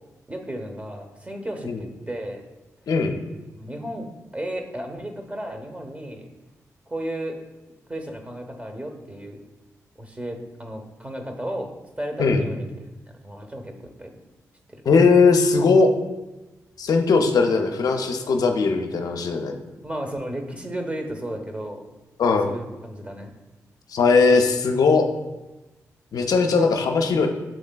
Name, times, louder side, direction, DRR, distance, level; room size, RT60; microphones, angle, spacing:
voice 1, 0.3-2.4 3.5-4.1 4.3-6.3 6.9-7.4 7.9-9.4 10.0-14.1 14.7-14.8 19.8-21.8 22.3-23.3, right 1 dB, 20° right, 4 dB, 0.9 m, -34 dB
voice 2, 2.9-3.2 12.2-12.4 14.9-15.9 16.8-19.6 22.2-22.5 23.9-25.1 26.1-27.3, left 4 dB, 70° left, 5 dB, 0.5 m, -19 dB
7.4 x 3.1 x 2.2 m, 1.1 s
supercardioid pair, 45°, 7 cm